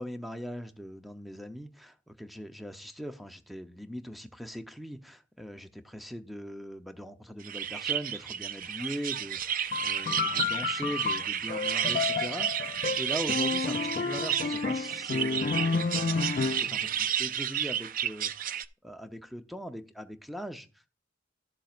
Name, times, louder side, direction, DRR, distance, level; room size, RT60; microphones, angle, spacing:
voice 1, 0.0-16.3 16.6-20.9, equal, ahead, 7 dB, 0.7 m, -41 dB
sound 1, 7.4-18.6, right 9 dB, 45° right, 0.5 m, -32 dB
sound 2, 9.7-16.8, left 5 dB, 45° left, 0.3 m, -31 dB
13.0 x 7.4 x 2.5 m, 0.31 s
head